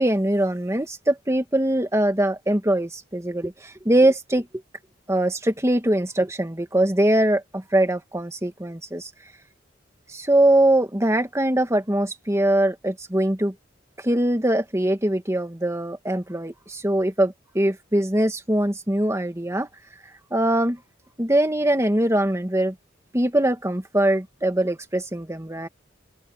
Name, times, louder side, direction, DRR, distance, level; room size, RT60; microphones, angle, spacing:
voice 1, 0.0-4.5 5.1-9.1 10.1-13.5 14.0-19.7 20.3-20.8 21.2-22.7 23.1-25.7, right 1 dB, 15° right, 1.9 m, -22 dB
head